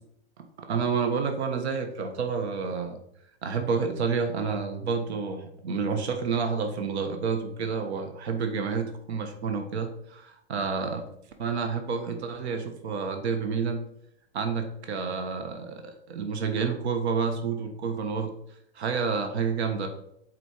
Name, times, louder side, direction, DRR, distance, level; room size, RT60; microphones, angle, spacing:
voice 1, 0.4-3.0 3.4-11.0 11.4-13.8 14.3-18.3 18.7-19.9, right 5 dB, 75° right, 7 dB, 1.2 m, -29 dB
8.0 x 4.4 x 4.4 m, 0.74 s
supercardioid pair, 170°, 33 cm